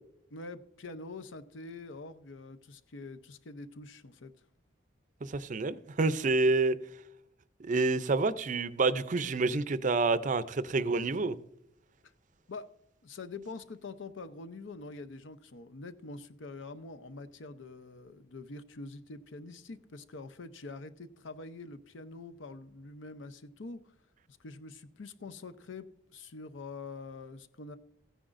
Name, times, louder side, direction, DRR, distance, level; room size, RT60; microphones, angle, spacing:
voice 1, 0.3-4.3 12.5-12.7 13.0-23.9 24.3-27.8, left 3 dB, 80° left, 0.7 m, -45 dB
voice 2, 5.2-6.8 7.6-11.4, right 3 dB, 40° right, 0.5 m, -28 dB
15.0 x 10.0 x 2.5 m
head